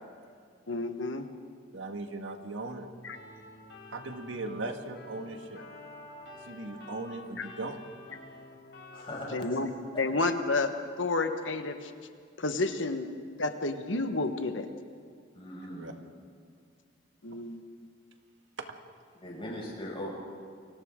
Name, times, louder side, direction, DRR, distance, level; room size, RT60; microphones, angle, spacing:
voice 1, 0.7-1.3 3.0-3.2 7.4-7.5 9.3-9.7 10.0-11.9 12.4-13.1 13.4-14.7 17.2-17.6, left 3 dB, 85° left, 7 dB, 1.4 m, -30 dB
voice 2, 1.7-2.9 3.9-5.6 6.5-7.8 15.7-15.9 18.6-18.8, right 2 dB, 85° right, 5 dB, 1.8 m, -38 dB
sound 1, 3.1-9.2, left 2 dB, 65° left, 5.3 m, -49 dB
voice 3, 8.9-10.0 15.3-15.9 19.2-20.1, left 1 dB, 30° left, -4 dB, 6.7 m, -40 dB
29.0 x 24.0 x 3.8 m, 2.2 s
head